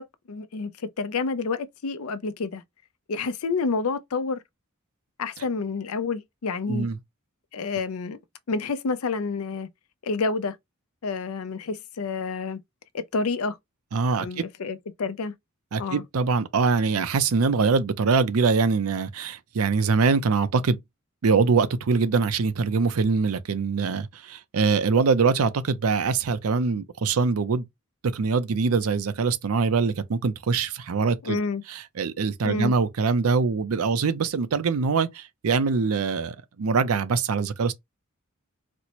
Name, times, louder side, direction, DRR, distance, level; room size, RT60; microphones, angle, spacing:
voice 1, 0.0-2.6 3.1-4.4 5.2-6.9 7.5-8.2 8.5-9.7 10.0-10.6 11.0-12.6 12.9-13.6 14.2-15.3 15.8-16.0 31.2-31.6 32.4-32.7, left 4 dB, 85° left, 0.5 m, -29 dB
voice 2, 6.7-7.0 13.9-14.4 15.7-20.8 21.2-27.7 28.0-31.4 31.7-37.7, right 4 dB, 85° right, 0.5 m, -23 dB
4.2 x 2.1 x 2.9 m
head